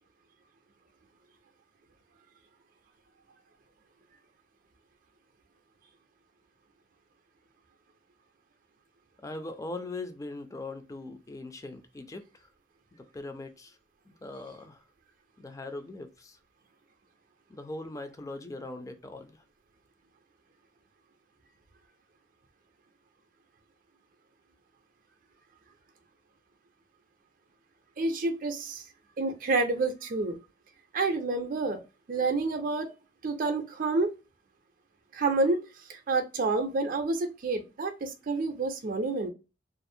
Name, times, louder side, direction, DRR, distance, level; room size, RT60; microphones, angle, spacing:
voice 1, 9.2-12.2 12.9-13.8 14.1-14.8 15.4-16.4 17.5-19.4, left 2 dB, 20° left, 0.4 m, -40 dB
voice 2, 28.0-28.8 29.2-30.4 30.9-31.8 32.1-32.9 33.2-34.1 35.1-35.6 35.9-39.3, right 3 dB, 50° right, 0.4 m, -28 dB
2.5 x 2.0 x 2.6 m
head